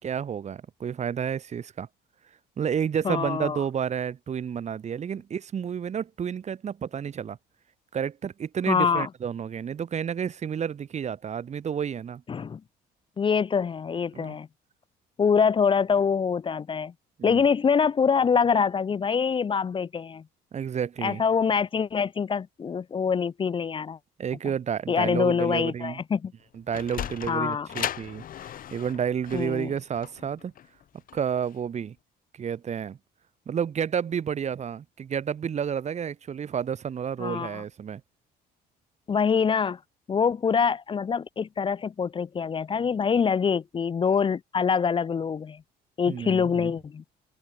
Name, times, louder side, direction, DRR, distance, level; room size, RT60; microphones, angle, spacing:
voice 1, 0.0-1.9 2.6-7.4 7.9-12.2 14.1-14.4 17.2-17.4 20.5-21.2 24.2-26.0 26.5-28.2 28.7-30.5 31.1-31.9 32.3-33.0 33.5-38.0 46.1-46.7, right 8 dB, 40° right, 2.8 m, -30 dB
voice 2, 3.0-3.6 8.7-9.1 12.3-12.6 13.2-14.5 15.2-16.9 17.2-20.2 21.0-24.0 24.9-26.3 27.3-27.7 29.3-29.7 37.2-37.6 39.1-39.8 40.1-45.6 46.0-47.0, left 6 dB, 30° left, 0.8 m, -25 dB
Sliding door, 26.4-31.6, left 10 dB, 55° left, 2.6 m, -37 dB
open air
cardioid pair, 110°, 17 cm